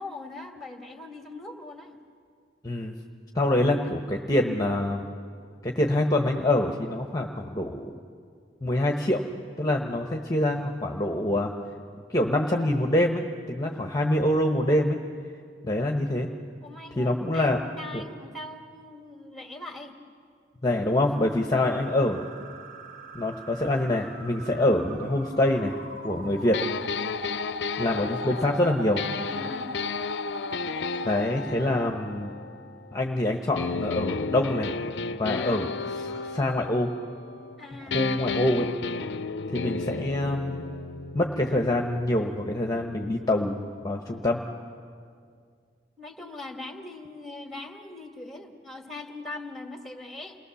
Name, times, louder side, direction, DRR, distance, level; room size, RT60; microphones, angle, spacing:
voice 1, 0.0-2.0 16.6-20.0 21.5-21.8 28.2-28.4 29.2-29.7 37.6-38.0 39.6-39.7 46.0-50.4, left 2 dB, ahead, 4 dB, 2.0 m, -41 dB
voice 2, 2.6-3.0 3.3-5.0 5.6-7.9 8.6-9.2 9.6-11.5 12.1-15.0 15.6-16.3 17.0-17.6 17.9-18.0 20.6-22.3 23.1-25.8 26.0-26.6 27.8-29.0 31.0-32.3 32.9-34.7 35.2-36.9 37.9-38.7 39.5-40.7 41.1-44.4, left 1 dB, 20° left, 2 dB, 1.1 m, -25 dB
sound 1, 21.6-31.2, equal, 55° right, 5.3 m, -40 dB
sound 2, 26.5-33.1 33.6-37.6 37.9-43.6, left 5 dB, 70° left, 0.5 m, -34 dB
29.0 x 19.5 x 7.0 m, 2.2 s
head